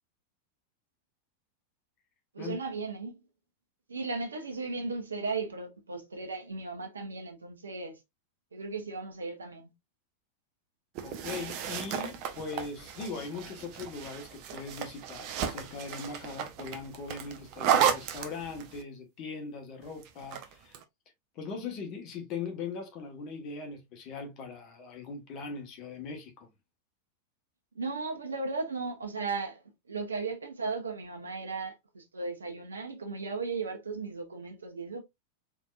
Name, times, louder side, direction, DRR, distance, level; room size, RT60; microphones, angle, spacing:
voice 1, 2.3-3.2 3.9-8.0 8.5-9.7 27.7-29.6 29.9-35.0, right 4 dB, 75° right, 1.1 m, -36 dB
sound 1, 10.9-18.8 20.0-20.8, right 9 dB, 45° right, 0.7 m, -33 dB
voice 2, 11.0-20.8 21.3-26.5, left 4 dB, 40° left, 1.5 m, -40 dB
4.3 x 3.6 x 2.5 m
figure-of-eight pair, 90°, 0 cm